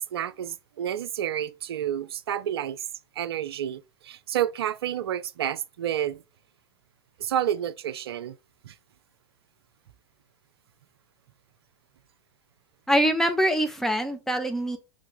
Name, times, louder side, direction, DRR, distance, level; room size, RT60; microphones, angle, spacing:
voice 1, 0.0-2.9 3.2-6.2 7.2-8.3 8.6-8.7, right 10 dB, 65° right, 0.4 m, -30 dB
voice 2, 12.9-14.8, equal, ahead, 0.7 m, -24 dB
3.7 x 3.2 x 3.8 m
figure-of-eight pair, 95°, 14 cm